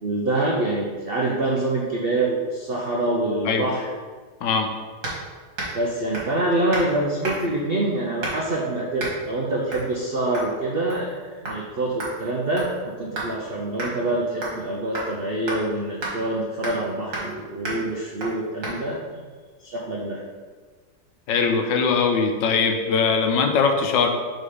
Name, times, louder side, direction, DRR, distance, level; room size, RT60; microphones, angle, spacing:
voice 1, 0.0-3.9 5.7-11.1 11.4-19.2 19.6-20.2, right 2 dB, 65° right, -3 dB, 0.5 m, -25 dB
voice 2, 4.4-4.7 21.3-24.1, left 5 dB, 80° left, 5 dB, 1.3 m, -21 dB
sound 1, 5.0-5.2 5.5-5.8 6.1-6.4 6.7-6.9 7.2-7.6 8.2-8.5 9.0-9.2 9.7-9.9 10.3-10.5 10.9-11.2 11.4-11.6 12.0-13.3 13.8-13.9 14.4-14.6 14.9-15.1 15.5-15.6 16.0-16.1 16.6-16.8 17.1-17.3 17.6-17.8 18.2-18.3 18.6-18.8, right 2 dB, 45° right, 1.9 m, -31 dB
5.5 x 3.9 x 4.9 m, 1.5 s
omnidirectional pair, 1.9 m